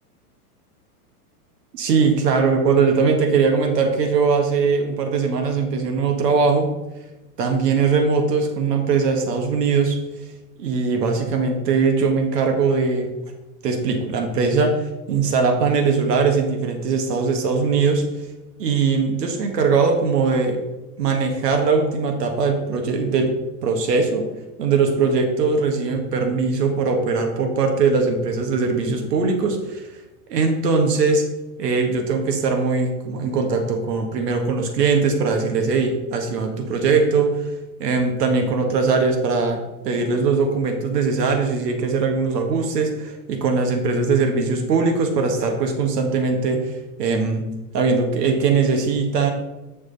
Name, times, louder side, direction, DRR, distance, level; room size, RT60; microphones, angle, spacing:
voice 1, 1.7-6.7 7.4-10.0 10.6-13.1 13.6-14.8 15.1-18.0 18.6-20.6 21.0-23.3 23.6-24.2 24.6-29.8 30.3-31.2 31.6-37.4 37.8-46.7 47.0-47.4 47.7-49.3, right 4 dB, 80° right, 4 dB, 1.7 m, -20 dB
7.6 x 6.4 x 4.0 m, 1.1 s
hypercardioid pair, 130°, 47 cm